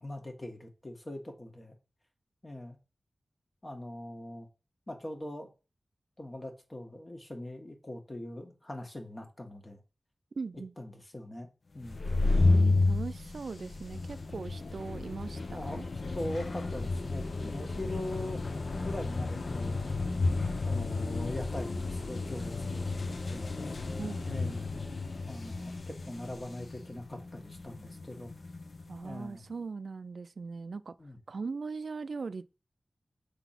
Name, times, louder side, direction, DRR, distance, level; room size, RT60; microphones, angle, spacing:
voice 1, 0.0-1.7 2.4-2.8 3.6-4.5 4.9-5.5 6.2-9.8 10.8-11.5 11.7-12.1 15.5-15.8 16.1-18.4 18.8-20.1 20.6-23.6 24.3-24.7 25.3-28.3 29.0-29.4 31.0-31.2, left 1 dB, 30° left, 1.6 m, -41 dB
voice 2, 10.4-10.7 12.2-15.9 24.0-24.5 28.9-30.9 31.3-32.5, right 4 dB, 70° right, 0.4 m, -40 dB
sound 1, 11.8-29.2, left 3 dB, 60° left, 0.7 m, -32 dB
6.9 x 4.0 x 5.8 m
wide cardioid pair, 105°, 0 cm